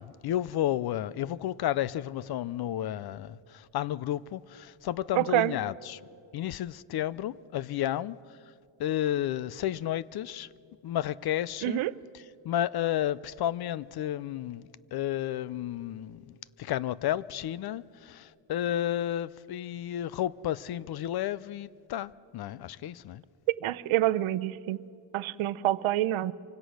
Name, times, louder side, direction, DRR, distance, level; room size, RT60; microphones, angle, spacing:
voice 1, 0.0-6.0 6.3-8.2 8.8-10.5 10.8-11.8 12.4-23.2, left 12 dB, 50° left, 0.5 m, -32 dB
voice 2, 5.2-5.5 11.6-11.9 23.6-24.8 25.1-26.3, right 15 dB, 80° right, 0.7 m, -27 dB
25.5 x 25.0 x 6.4 m
cardioid pair, 170°, 48 cm